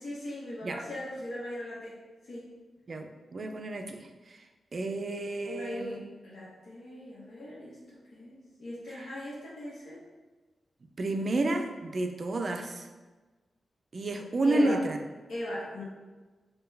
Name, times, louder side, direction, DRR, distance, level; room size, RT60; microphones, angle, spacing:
voice 1, 0.0-1.9 2.2-2.5 5.5-10.0 14.4-14.8 15.3-15.8, left 1 dB, 75° left, -6 dB, 0.9 m, -39 dB
voice 2, 2.9-4.5 4.7-6.0 11.0-12.9 13.9-15.0, right 2 dB, 40° right, 5 dB, 0.3 m, -31 dB
4.4 x 2.2 x 3.3 m, 1.3 s
wide cardioid pair, 145°, 0 cm